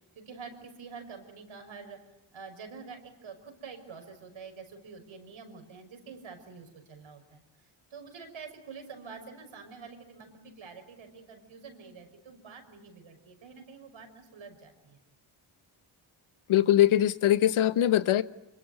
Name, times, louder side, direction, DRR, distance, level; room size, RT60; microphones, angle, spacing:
voice 1, 0.2-2.0 2.3-7.4 7.9-15.0, right 5 dB, 75° right, 6 dB, 5.9 m, -47 dB
voice 2, 16.5-18.2, left 12 dB, 90° left, 14 dB, 1.1 m, -22 dB
25.5 x 23.0 x 8.0 m, 0.95 s
cardioid pair, 80°, 48 cm